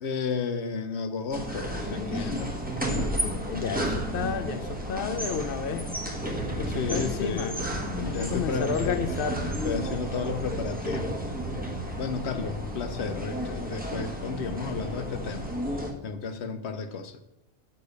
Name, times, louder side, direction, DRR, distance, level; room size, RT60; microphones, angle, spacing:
voice 1, 0.0-2.6 6.7-7.6 8.1-9.0 9.6-11.2 11.5-17.2, left 5 dB, 80° left, 1.1 m, -33 dB
sound 1, 1.3-15.9, equal, 10° right, 1.3 m, -32 dB
voice 2, 2.9-5.9 6.5-7.5 8.0-9.6, left 6 dB, 60° left, 0.8 m, -32 dB
6.8 x 6.7 x 6.7 m
omnidirectional pair, 1.1 m